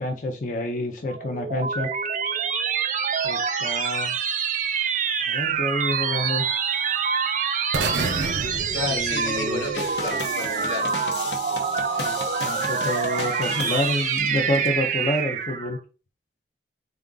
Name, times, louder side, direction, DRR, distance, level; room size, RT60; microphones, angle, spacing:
voice 1, 0.0-1.9 3.2-4.2 5.2-6.5 8.9-9.7 12.0-15.8, left 1 dB, 45° left, 3 dB, 0.4 m, -28 dB
sound 1, 1.1-15.8, right 6 dB, 40° right, 0.3 m, -26 dB
sound 2, 7.7-9.8, right 3 dB, 80° right, 0.7 m, -29 dB
voice 2, 8.7-10.9, left 3 dB, 85° left, 2 dB, 1.3 m, -31 dB
sound 3, 9.7-14.7, left 4 dB, 70° left, 0.7 m, -35 dB
3.8 x 2.4 x 3.7 m, 0.35 s
head